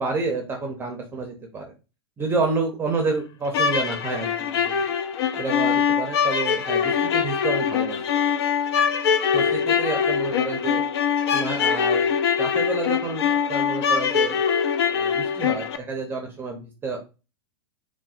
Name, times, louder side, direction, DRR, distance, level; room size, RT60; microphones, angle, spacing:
voice 1, 0.0-1.6 2.2-4.6 5.4-8.0 9.3-10.8 11.3-12.1 12.4-14.4 14.9-17.0, right 3 dB, 15° right, 2 dB, 0.5 m, -29 dB
sound 1, 3.5-15.8, left 7 dB, 70° left, 0.4 m, -23 dB
3.8 x 2.1 x 2.4 m, 0.30 s
hypercardioid pair, 130°, 14 cm